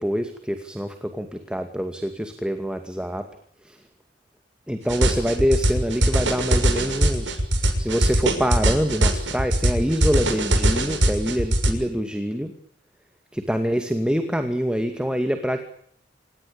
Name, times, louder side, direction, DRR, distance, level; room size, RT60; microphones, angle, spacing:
voice 1, 0.0-3.3 3.6-3.8 4.7-7.4 7.8-12.5 13.3-15.6, equal, 5° right, 7 dB, 2.3 m, -25 dB
sound 1, 4.9-11.7, right 1 dB, 90° right, 6.3 m, -21 dB
27.5 x 19.5 x 8.8 m, 0.66 s
head